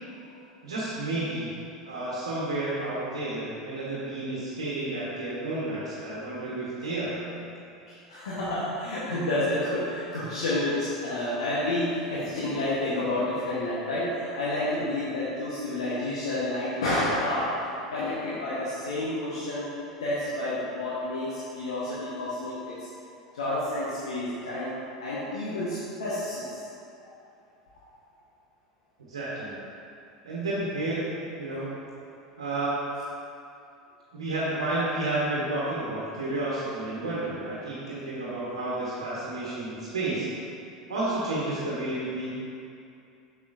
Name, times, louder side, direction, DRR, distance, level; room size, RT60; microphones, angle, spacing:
voice 1, 0.6-1.5 1.8-7.5 29.1-29.6 30.2-31.7 32.4-32.7 34.1-40.3 40.9-42.3, right 2 dB, 75° right, -8 dB, 1.2 m, -31 dB
voice 2, 7.9-19.7 20.0-22.8 23.3-24.7 25.0-26.6 37.6-37.8 40.8-41.2, left 1 dB, 70° left, -9 dB, 1.2 m, -30 dB
7.0 x 6.9 x 2.6 m, 2.6 s
figure-of-eight pair, 80°, 3 cm